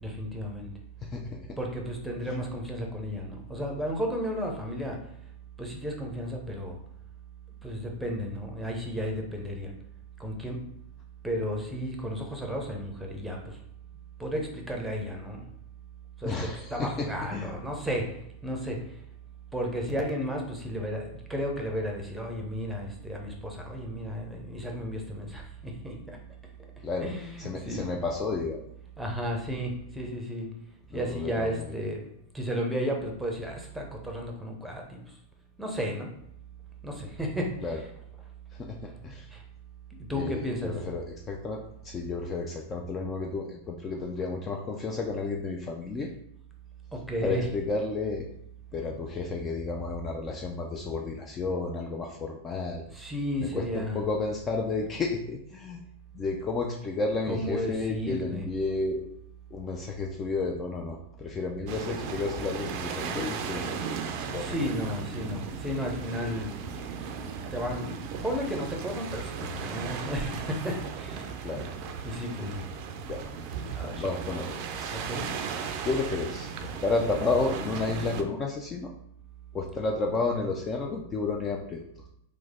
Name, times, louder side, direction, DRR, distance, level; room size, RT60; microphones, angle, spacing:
voice 1, 0.0-0.7 1.6-5.0 5.6-6.8 7.6-9.7 10.2-10.6 11.2-13.6 14.2-15.4 16.2-19.0 19.5-26.2 27.0-27.9 29.0-30.5 30.9-32.0 32.3-35.2 35.6-36.1 36.8-37.9 39.3-39.4 39.9-40.8 46.9-47.5 52.9-54.0 55.0-55.1 57.3-58.5 64.4-66.6 67.1-71.3 72.0-72.6 73.7-74.1 74.9-75.3, equal, 5° right, 1 dB, 0.7 m, -33 dB
voice 2, 1.0-1.6 2.3-2.4 16.2-17.6 26.8-27.1 27.4-28.6 30.9-31.8 37.6-37.8 38.5-39.3 40.1-46.1 47.2-48.3 48.7-52.9 53.4-55.8 56.1-59.0 59.5-64.0 64.3-64.6 71.4-71.7 73.1-73.2 73.9-74.9 75.8-78.9 79.5-81.8, left 3 dB, 25° left, 1 dB, 0.4 m, -32 dB
sound 1, 61.7-78.2, right 6 dB, 50° right, 0.4 m, -36 dB
3.1 x 2.1 x 3.6 m, 0.75 s
hypercardioid pair, 105°, 0 cm